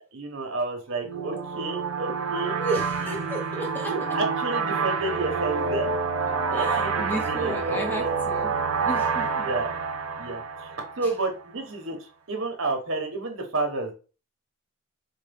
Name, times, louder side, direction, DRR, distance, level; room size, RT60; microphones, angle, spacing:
voice 1, 0.1-3.2 3.9-5.9 6.5-8.1 9.4-9.7 10.2-12.0 12.3-13.9, right 3 dB, 70° right, 3 dB, 1.0 m, -31 dB
sound 1, 1.0-11.4, right 5 dB, 90° right, 0.6 m, -28 dB
voice 2, 2.6-3.9 6.3-9.5 11.0-11.1, right 2 dB, 10° left, 0 dB, 0.8 m, -34 dB
4.4 x 2.2 x 3.4 m, 0.34 s
head